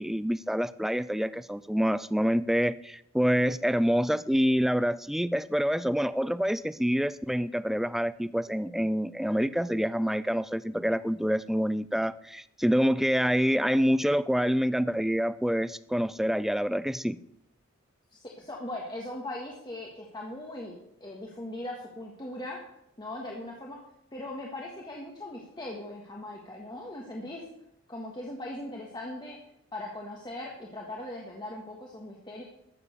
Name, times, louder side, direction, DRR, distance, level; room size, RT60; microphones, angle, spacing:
voice 1, 0.0-17.2, equal, ahead, 14 dB, 0.3 m, -27 dB
voice 2, 18.1-22.6 23.0-23.8 24.1-27.4 27.9-29.4 29.7-32.4, left 1 dB, 20° left, -1 dB, 1.6 m, -39 dB
13.0 x 7.4 x 6.9 m, 0.80 s
head